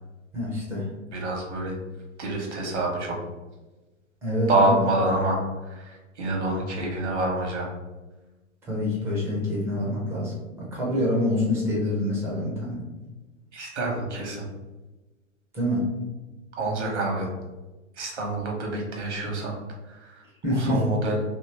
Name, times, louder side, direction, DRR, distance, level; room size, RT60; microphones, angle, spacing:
voice 1, 0.3-0.9 4.2-4.8 8.7-12.8 15.5-15.9 20.4-20.8, left 1 dB, 5° right, -6 dB, 0.4 m, -26 dB
voice 2, 1.1-1.8 2.2-3.2 4.5-5.4 5.6-7.7 13.5-14.5 16.5-17.3 18.0-19.6 19.9-20.2 20.5-21.2, right 2 dB, 65° right, 0 dB, 1.1 m, -27 dB
2.8 x 2.8 x 2.8 m, 1.2 s
figure-of-eight pair, 105°, 38 cm